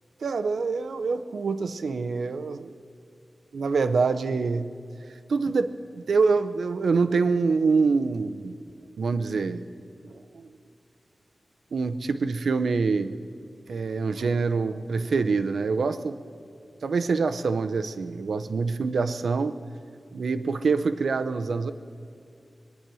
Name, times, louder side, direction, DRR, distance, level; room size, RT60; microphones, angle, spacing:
voice 1, 0.2-2.7 3.5-4.7 5.3-8.6 9.0-9.7 10.0-10.5 11.7-13.1 13.7-16.2 16.8-19.6 20.1-21.7, right 4 dB, 90° right, 10 dB, 0.7 m, -25 dB
22.0 x 10.5 x 6.3 m, 2.5 s
wide cardioid pair, 85°, 0 cm